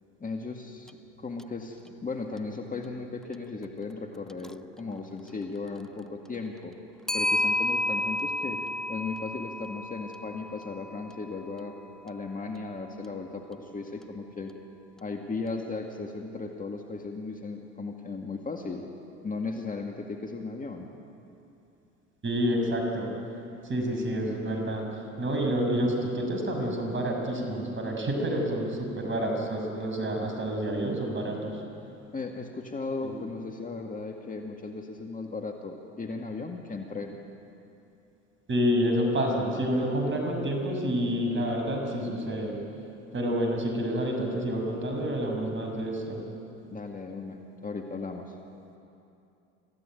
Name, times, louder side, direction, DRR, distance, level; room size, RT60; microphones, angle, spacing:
voice 1, 0.2-0.9 1.2-6.7 7.1-8.6 8.9-11.7 12.0-14.5 15.0-18.9 19.2-20.9 32.1-37.2 46.7-48.3, left 3 dB, 25° left, 2 dB, 2.1 m, -36 dB
Clock, 0.9-1.0 1.4-1.5 4.3-4.5 7.1-11.3, left 2 dB, ahead, 0.5 m, -31 dB
voice 2, 22.2-23.1 23.6-24.9 25.2-31.6 33.0-33.2 38.5-42.6 43.1-46.2, equal, 35° right, 2 dB, 6.8 m, -28 dB
26.5 x 15.5 x 9.2 m, 2.7 s
hypercardioid pair, 75°, 36 cm